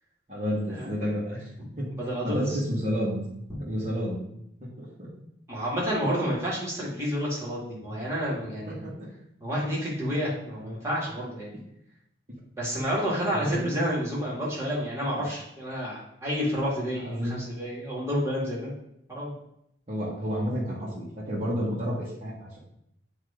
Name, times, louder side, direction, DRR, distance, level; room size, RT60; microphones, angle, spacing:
voice 1, 0.3-1.5 1.8-1.9 2.2-3.2 3.6-4.2 4.6-5.1 8.7-8.9 13.3-13.7 15.2-15.3 17.0-17.4 19.9-22.6, equal, 35° right, -8 dB, 1.5 m, -30 dB
voice 2, 2.0-2.6 3.5-3.6 5.5-8.8 9.4-11.5 12.6-18.7 19.1-19.3, equal, 15° right, -6 dB, 2.2 m, -30 dB
8.2 x 3.1 x 5.0 m, 0.78 s
head